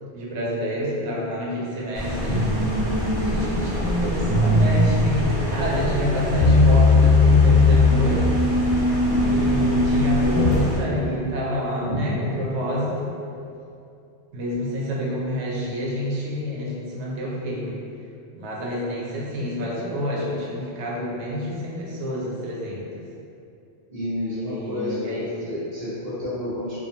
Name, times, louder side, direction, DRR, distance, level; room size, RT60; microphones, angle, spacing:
voice 1, 0.1-2.7 3.2-8.3 9.2-13.1 14.3-17.8 18.3-23.0 24.3-25.5, left 1 dB, 90° right, -4 dB, 0.9 m, -28 dB
sound 1, 1.9-10.8, equal, 30° left, 0.7 m, -28 dB
sound 2, 2.3-13.1, left 2 dB, 85° left, 0.9 m, -21 dB
voice 2, 9.0-9.6 23.9-26.8, left 1 dB, 45° right, -10 dB, 0.6 m, -30 dB
2.4 x 2.2 x 2.6 m, 2.6 s
omnidirectional pair, 1.1 m